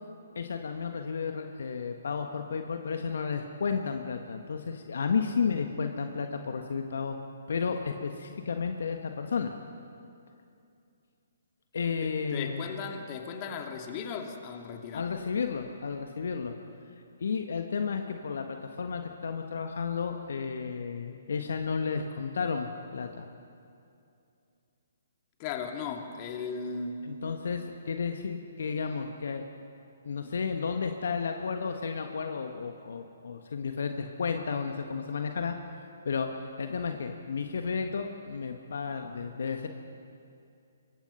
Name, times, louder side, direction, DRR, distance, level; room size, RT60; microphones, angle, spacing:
voice 1, 0.3-7.2 7.5-9.5 11.7-12.7 14.9-16.5 17.2-23.3 27.1-29.4 30.0-35.5 36.0-36.3 36.6-39.7, left 5 dB, 65° left, 5 dB, 1.4 m, -32 dB
voice 2, 12.0-15.1 25.4-27.1, left 5 dB, 30° left, 3 dB, 2.4 m, -37 dB
24.5 x 23.0 x 5.6 m, 2.5 s
figure-of-eight pair, 130°, 0 cm